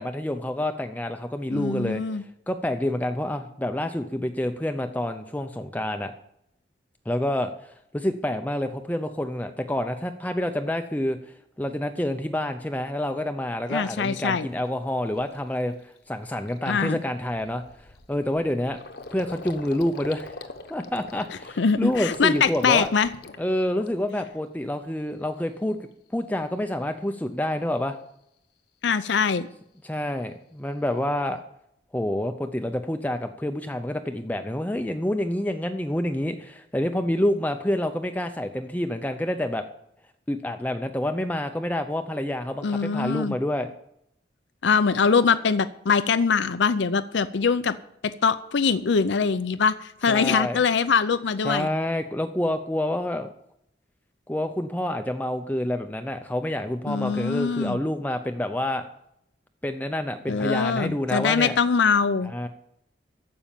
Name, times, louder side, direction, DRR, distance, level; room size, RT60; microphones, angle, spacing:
voice 1, 0.0-2.0 2.5-6.1 7.1-11.2 11.6-17.6 18.1-18.8 19.1-20.3 20.7-22.9 23.4-25.8 26.1-28.0 29.8-31.4 31.9-39.6 40.3-43.7 50.1-50.6 51.4-53.3 54.3-58.8 59.6-61.6 62.3-62.5, left 1 dB, 10° left, 7 dB, 0.5 m, -28 dB
voice 2, 1.5-2.2 13.7-14.5 16.7-17.0 21.6-23.1 28.8-29.5 42.6-43.4 44.6-47.8 48.0-51.7 56.9-57.8 60.3-62.3, left 5 dB, 80° left, 13 dB, 0.5 m, -23 dB
Gurgling, 14.6-14.7 15.2-15.4 15.8-16.0 16.2-24.3 24.6-25.3, left 2 dB, 60° left, 1.0 m, -43 dB
14.5 x 5.5 x 8.8 m, 0.75 s
head